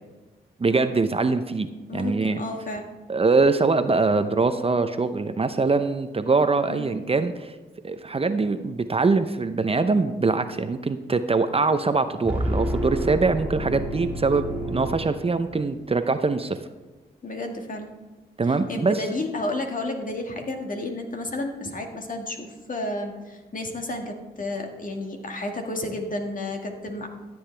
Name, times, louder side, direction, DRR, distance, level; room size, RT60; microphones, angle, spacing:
voice 1, 0.6-1.7 1.9-2.4 3.1-7.5 7.8-16.6 18.4-19.0, right 3 dB, 30° right, 10 dB, 0.7 m, -23 dB
voice 2, 1.9-2.8 6.7-7.0 17.2-17.9 18.7-27.1, left 2 dB, 50° left, 3 dB, 1.9 m, -31 dB
sound 1, 12.2-15.7, equal, 10° right, 1.6 m, -29 dB
13.5 x 7.9 x 3.4 m, 1.2 s
cardioid pair, 55°, 18 cm